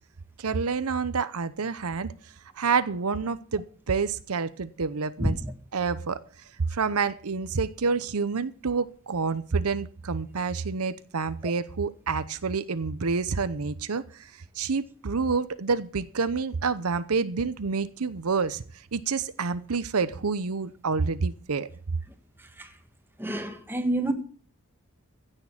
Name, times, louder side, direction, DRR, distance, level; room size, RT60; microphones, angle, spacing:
voice 1, 0.4-2.1 2.6-5.4 5.7-6.2 6.7-18.6 18.9-21.7, right 5 dB, 85° right, 0.8 m, -28 dB
voice 2, 23.2-24.1, right 2 dB, 10° right, 1.6 m, -28 dB
16.0 x 6.7 x 7.3 m
head